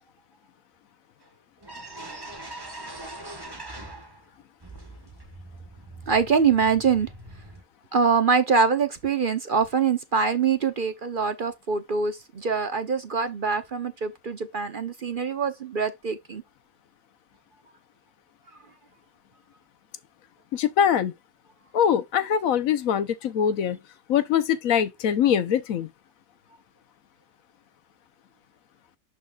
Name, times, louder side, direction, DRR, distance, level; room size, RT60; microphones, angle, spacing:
sound 1, 1.2-1.3 1.6-4.3 4.6-7.6, right 1 dB, 15° right, 1.5 m, -42 dB
voice 1, 6.1-7.1 7.9-16.4, right 5 dB, 45° right, 0.8 m, -24 dB
voice 2, 20.5-21.1 21.7-23.8 24.1-25.9, left 9 dB, 75° left, 1.2 m, -23 dB
12.0 x 4.2 x 2.3 m
omnidirectional pair, 1.5 m